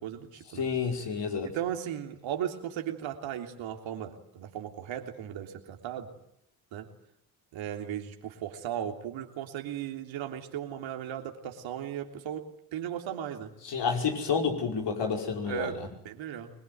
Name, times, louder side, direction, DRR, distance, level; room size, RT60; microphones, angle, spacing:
voice 1, 0.0-0.7 1.4-6.1 6.7-6.9 7.5-13.5 15.5-16.5, right 10 dB, 75° right, 4 dB, 3.4 m, -36 dB
voice 2, 0.5-1.5 13.6-15.9, left 5 dB, 60° left, 3 dB, 5.5 m, -30 dB
25.0 x 21.5 x 9.4 m, 0.75 s
hypercardioid pair, 50°, 47 cm